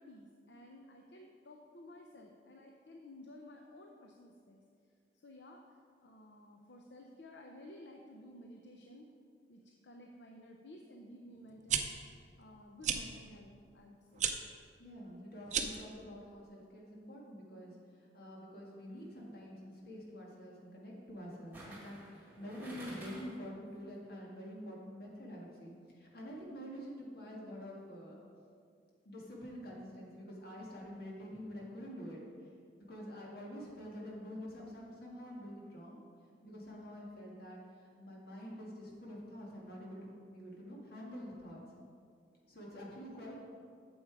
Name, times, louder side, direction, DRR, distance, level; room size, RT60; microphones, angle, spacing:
voice 1, 0.0-4.6 5.2-5.6 6.0-9.1 9.5-14.3 43.0-43.2, left 1 dB, 75° left, 2 dB, 0.7 m, -54 dB
sound 1, 11.5-11.8 12.8-13.0 14.1-14.3 15.4-15.8, right 8 dB, 45° right, 0.6 m, -32 dB
voice 2, 14.8-17.8 18.1-28.2 29.0-32.2 32.8-36.0 36.4-37.6 38.0-41.6 42.5-43.4, equal, 60° left, -3 dB, 2.0 m, -47 dB
sound 2, 18.9-19.2 21.5-23.5 23.8-23.9, equal, 10° right, 2.0 m, -50 dB
8.6 x 7.1 x 4.7 m, 2.3 s
head